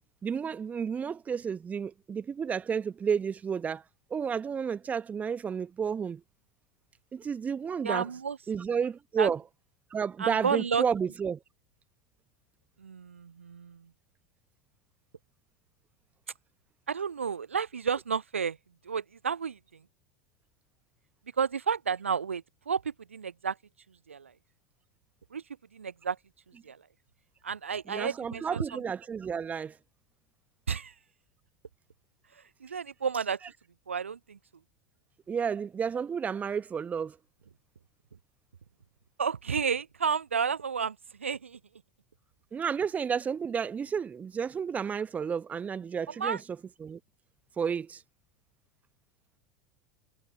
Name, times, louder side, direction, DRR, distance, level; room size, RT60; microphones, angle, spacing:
voice 1, 0.2-3.8 4.1-6.2 7.1-8.1 8.5-9.4 9.9-11.4 27.9-29.7 35.3-37.2 42.5-46.4 46.8-47.0 47.6-48.0, right 6 dB, 20° right, 1.0 m, -31 dB
voice 2, 7.8-8.4 9.2-9.3 10.2-10.8 12.8-13.8 16.9-18.6 18.9-19.6 21.4-22.8 23.1-23.6 24.1-24.3 25.3-25.4 25.7-26.2 26.7-26.8 27.4-28.8 30.7-30.9 32.6-33.4 33.9-34.4 39.2-41.6 46.2-46.4, right 6 dB, 80° right, 0.4 m, -31 dB
figure-of-eight pair, 80°, 7 cm